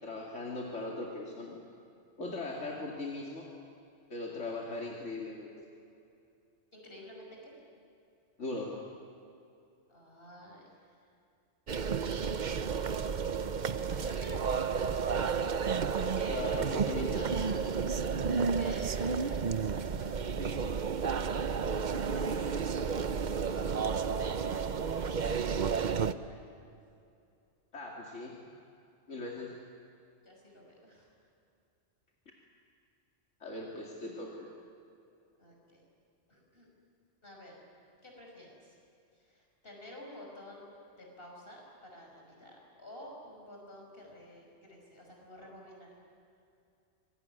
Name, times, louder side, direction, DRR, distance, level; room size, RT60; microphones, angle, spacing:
voice 1, 0.0-1.6 2.2-3.5 4.1-5.7 8.4-8.8 16.3-17.2 27.7-28.4 29.1-29.5 33.4-34.5, left 2 dB, 85° left, -1 dB, 2.8 m, -39 dB
voice 2, 6.7-7.5 9.9-11.0 13.9-15.3 15.9-16.6 17.1-21.4 21.8-26.7 30.2-31.1 35.4-35.8 36.3-36.7 37.2-37.6 38.0-38.8 39.2-40.7 41.0-45.9, left 1 dB, 50° left, -1 dB, 6.3 m, -51 dB
sound 1, 11.7-26.1, right 6 dB, 45° right, 0.8 m, -31 dB
25.5 x 20.5 x 9.7 m, 2.6 s
omnidirectional pair, 1.2 m